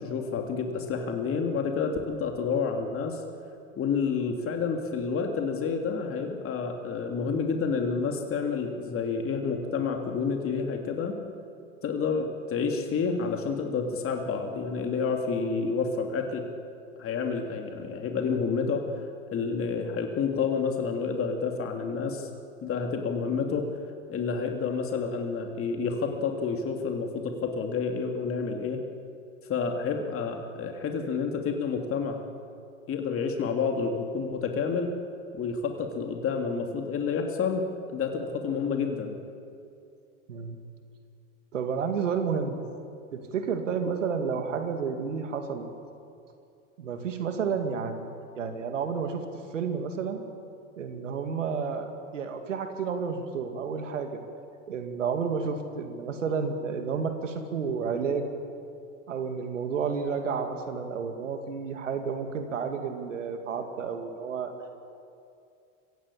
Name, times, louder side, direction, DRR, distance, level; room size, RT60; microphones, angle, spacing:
voice 1, 0.0-3.2 3.8-11.2 11.8-16.4 17.0-18.8 19.3-22.3 22.6-23.7 24.1-28.8 29.5-32.2 32.9-34.9 35.3-39.1, left 5 dB, 35° left, 3 dB, 2.8 m, -29 dB
voice 2, 41.5-42.6 43.1-45.7 46.8-48.1 48.4-49.2 49.5-50.2 50.8-54.2 54.7-58.3 59.1-64.5, right 6 dB, 90° right, 6 dB, 2.4 m, -31 dB
24.5 x 16.0 x 8.6 m, 2.5 s
hypercardioid pair, 95°, 37 cm